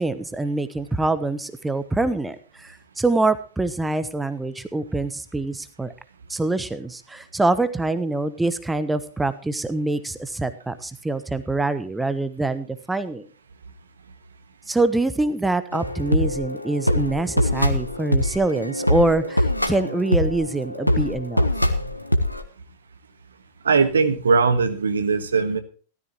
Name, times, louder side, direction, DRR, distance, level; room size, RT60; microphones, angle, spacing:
voice 1, 0.0-5.9 6.3-13.2 14.7-21.5, right 2 dB, 5° right, 12 dB, 1.0 m, -25 dB
sound 1, 15.7-22.4, left 1 dB, 90° left, 1.1 m, -23 dB
voice 2, 23.6-25.6, right 4 dB, 70° right, 11 dB, 1.4 m, -20 dB
16.5 x 13.5 x 3.0 m, 0.39 s
figure-of-eight pair, 90°, 0 cm